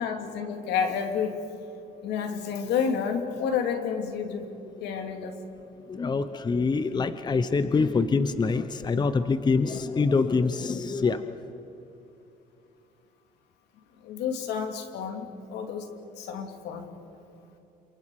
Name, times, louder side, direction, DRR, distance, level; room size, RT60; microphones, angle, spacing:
voice 1, 0.0-1.4 2.0-4.5 4.8-5.4 14.0-15.9 16.2-16.9, left 6 dB, 85° left, 5 dB, 2.7 m, -30 dB
voice 2, 5.9-11.5, left 4 dB, 25° left, 11 dB, 0.9 m, -25 dB
29.0 x 27.5 x 4.9 m, 2.9 s
cardioid pair, 110°, 17 cm